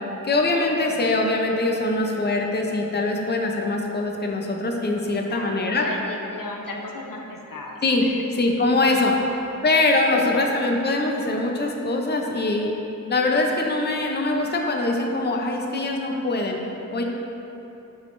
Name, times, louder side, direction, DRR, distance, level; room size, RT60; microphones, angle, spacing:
voice 1, 0.2-5.9 7.8-8.0 8.4-9.2 9.6-12.7 13.1-16.6 16.9-17.0, left 2 dB, 30° left, 1 dB, 0.5 m, -23 dB
voice 2, 5.3-8.4 9.3-9.4 10.1-10.5, left 2 dB, 75° left, 0 dB, 0.7 m, -36 dB
10.5 x 3.6 x 2.6 m, 3.0 s
wide cardioid pair, 65°, 33 cm